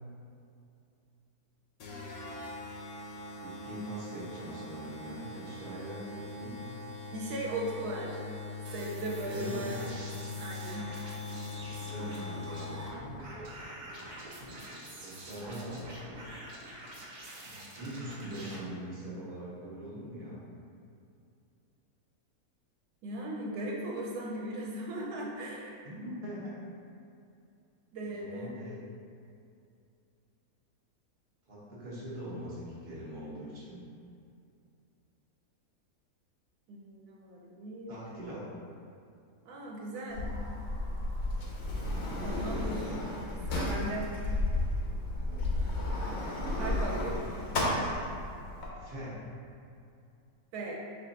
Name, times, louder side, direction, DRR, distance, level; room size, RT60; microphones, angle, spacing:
sound 1, 1.8-13.2, left 3 dB, 75° left, 1.1 m, -42 dB
voice 1, 3.4-6.6 9.2-9.9 11.8-13.0 15.0-15.8 17.4-20.4 25.8-26.6 28.1-28.8 31.5-33.8 37.9-38.5 45.1-45.5 48.8-49.2, equal, 40° right, -8 dB, 1.1 m, -42 dB
voice 2, 7.1-8.2 8.7-9.9 10.4-10.9 11.3-11.6 23.0-25.8 27.9-28.5 36.7-38.0 39.4-40.3 42.2-42.9 43.5-44.1 46.6-47.2 50.5-50.8, right 1 dB, 85° right, -3 dB, 1.2 m, -38 dB
sound 2, 8.6-18.5, right 1 dB, 65° right, 1.3 m, -46 dB
Sliding door, 40.1-48.7, left 1 dB, 55° left, 0.8 m, -33 dB
4.7 x 2.4 x 3.9 m, 2.5 s
omnidirectional pair, 1.6 m